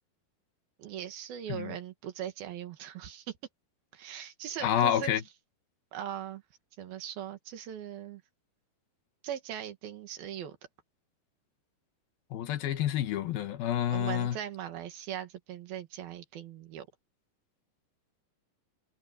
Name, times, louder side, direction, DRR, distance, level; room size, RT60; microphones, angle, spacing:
voice 1, 0.8-3.4 3.9-5.1 5.9-6.4 6.8-8.2 9.2-10.6 13.9-16.9, right 10 dB, 75° right, 3.5 m, -40 dB
voice 2, 4.6-5.2 12.3-14.4, left 11 dB, 75° left, 3.1 m, -29 dB
omnidirectional pair, 4.4 m